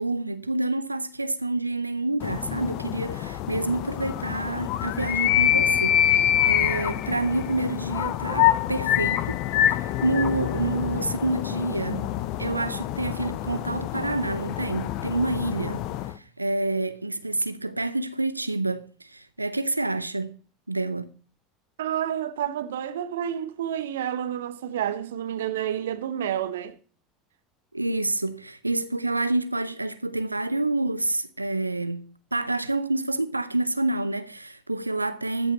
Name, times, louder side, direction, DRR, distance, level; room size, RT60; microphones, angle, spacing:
voice 1, 0.0-9.4 9.7-12.1 12.4-20.4 20.7-21.1 27.7-35.5, right 2 dB, 90° right, 0.5 m, -28 dB
sound 1, 2.2-16.1, left 11 dB, 50° left, 0.6 m, -26 dB
voice 2, 21.8-26.8, right 10 dB, 70° right, 0.8 m, -29 dB
14.0 x 5.6 x 6.7 m
figure-of-eight pair, 75°, 0 cm